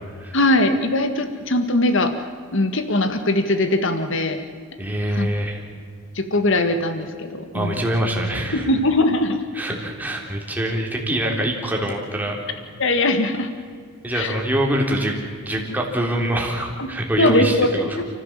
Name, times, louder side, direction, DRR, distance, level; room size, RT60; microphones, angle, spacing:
voice 1, 0.3-2.1 2.5-4.4 5.1-5.3 6.2-7.9 8.5-9.4 12.8-13.5 14.1-14.4 16.8-16.9 17.2-17.7 18.0-18.1, left 2 dB, 60° left, 8 dB, 1.7 m, -20 dB
voice 2, 4.8-5.6 7.5-8.7 9.5-12.4 14.0-15.1 15.4-18.0, right 1 dB, 10° right, 0 dB, 3.7 m, -24 dB
30.0 x 15.5 x 7.6 m, 2.1 s
head